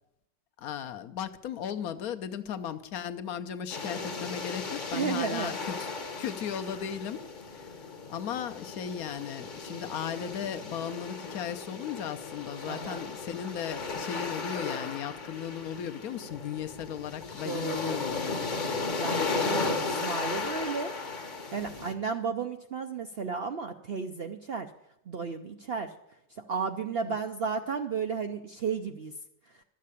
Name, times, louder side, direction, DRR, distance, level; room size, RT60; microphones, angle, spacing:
voice 1, 0.6-5.8 6.2-7.7 8.1-18.9 27.0-27.2, left 9 dB, 65° left, 9 dB, 1.1 m, -36 dB
sound 1, 3.7-21.9, left 4 dB, 35° left, 1.0 m, -35 dB
voice 2, 4.9-5.5 12.7-13.1 17.5-18.0 19.0-20.9 21.5-24.7 25.1-25.9 26.4-29.1, right 5 dB, 65° right, 6 dB, 0.6 m, -33 dB
12.5 x 7.5 x 8.3 m, 0.81 s
omnidirectional pair, 1.8 m